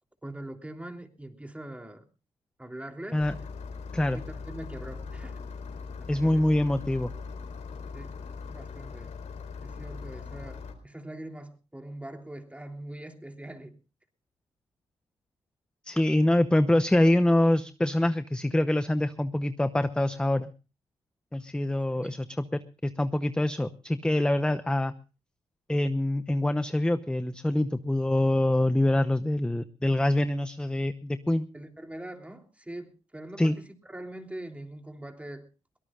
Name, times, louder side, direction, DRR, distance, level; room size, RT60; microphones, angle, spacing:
voice 1, 0.2-2.1 2.6-3.2 4.0-5.4 6.0-6.5 7.9-8.1 8.5-9.1 9.6-13.8 21.9-22.2 31.5-35.5, right 1 dB, 10° right, 4 dB, 3.2 m, -42 dB
Engine starting, 3.2-10.7, left 5 dB, 75° left, 4.2 m, -40 dB
voice 2, 6.1-7.1 15.8-20.5 21.3-24.9 25.7-31.5 33.4-33.6, left 1 dB, 5° left, 12 dB, 0.8 m, -25 dB
23.0 x 18.5 x 2.4 m, 0.32 s
cardioid pair, 70°, 12 cm